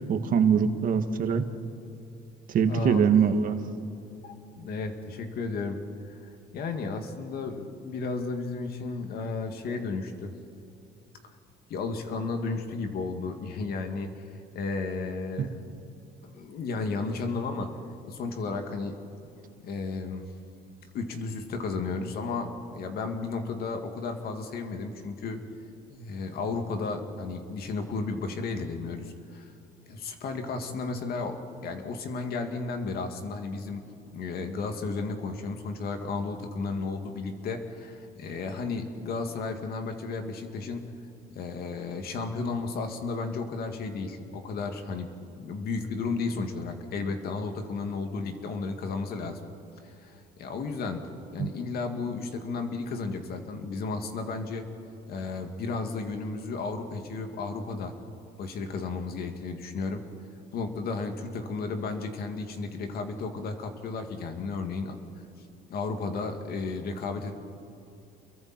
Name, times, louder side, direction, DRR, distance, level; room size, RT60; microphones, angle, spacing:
voice 1, 0.1-1.4 2.5-3.6 15.4-15.5 51.4-51.5, right 7 dB, 55° right, 7 dB, 1.6 m, -23 dB
voice 2, 2.7-3.1 4.2-5.8 6.1-10.3 11.7-14.1 14.5-15.7 16.2-17.7 18.0-19.0 19.6-20.3 20.9-25.4 25.9-29.5 29.9-33.8 34.1-40.8 41.3-49.4 49.8-51.0 51.3-54.7 55.1-57.9 58.4-60.0 60.5-65.0 65.7-67.3, left 4 dB, 65° left, 5 dB, 2.5 m, -33 dB
29.0 x 23.0 x 4.5 m, 2.8 s
cardioid pair, 110°, 17 cm